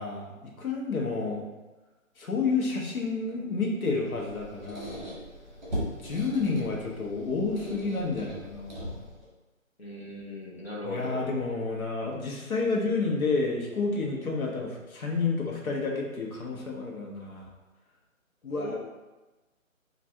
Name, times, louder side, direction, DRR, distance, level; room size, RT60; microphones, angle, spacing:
voice 1, 0.0-1.4 2.2-5.0 6.0-9.0 10.8-17.5 18.4-18.8, left 4 dB, 85° left, -1 dB, 1.0 m, -30 dB
Squeak, 4.1-9.3, equal, 30° right, 0.8 m, -39 dB
voice 2, 9.8-11.3 18.5-18.8, left 1 dB, 50° left, -4 dB, 0.7 m, -38 dB
2.7 x 2.5 x 3.3 m, 1.1 s
hypercardioid pair, 175°, 41 cm